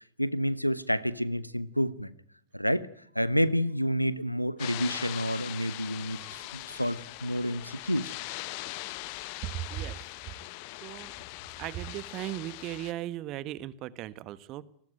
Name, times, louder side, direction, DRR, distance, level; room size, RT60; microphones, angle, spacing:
voice 1, 0.2-2.1 2.5-2.9 3.1-8.1, equal, 90° left, 1.1 m, -29 dB
sound 1, 4.6-12.9, left 19 dB, 45° left, 1.4 m, -41 dB
voice 2, 9.4-10.1 10.8-11.1 11.6-14.6, right 14 dB, 40° right, 1.5 m, -37 dB
28.5 x 20.0 x 9.2 m
figure-of-eight pair, 90°, 0 cm